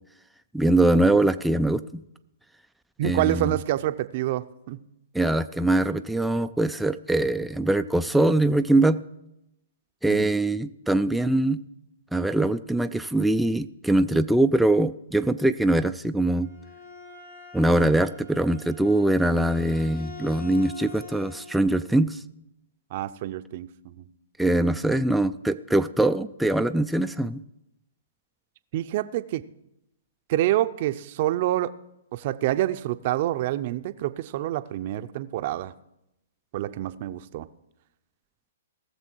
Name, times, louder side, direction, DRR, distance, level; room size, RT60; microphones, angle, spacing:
voice 1, 0.5-2.0 3.0-3.5 5.1-9.0 10.0-11.6 12.1-16.5 17.5-22.2 24.4-27.4, right 1 dB, ahead, 0.3 m, -22 dB
voice 2, 3.0-4.8 10.1-10.3 22.9-24.1 28.7-29.4 30.3-31.7 32.1-35.7 36.5-37.5, right 14 dB, 45° right, 0.6 m, -27 dB
Bowed string instrument, 16.2-21.7, left 4 dB, 85° left, 4.9 m, -45 dB
18.5 x 6.9 x 4.5 m
hypercardioid pair, 135°, 0 cm